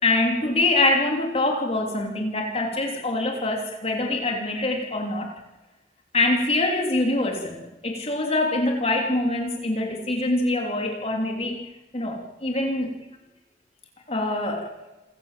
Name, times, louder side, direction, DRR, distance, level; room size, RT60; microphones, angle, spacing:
voice 1, 0.0-5.3 6.1-11.6 11.9-12.9 14.1-14.7, left 2 dB, 35° left, 1 dB, 3.2 m, -24 dB
28.5 x 16.5 x 7.5 m, 1.1 s
head